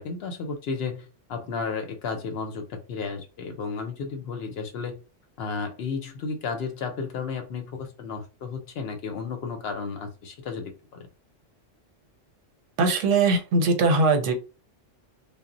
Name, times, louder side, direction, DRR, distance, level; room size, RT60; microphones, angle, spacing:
voice 1, 0.0-5.0 5.4-11.1, left 5 dB, 65° left, 5 dB, 0.7 m, -33 dB
voice 2, 12.8-14.3, right 3 dB, 85° right, 5 dB, 1.0 m, -21 dB
2.0 x 2.0 x 3.7 m, 0.32 s
omnidirectional pair, 1.2 m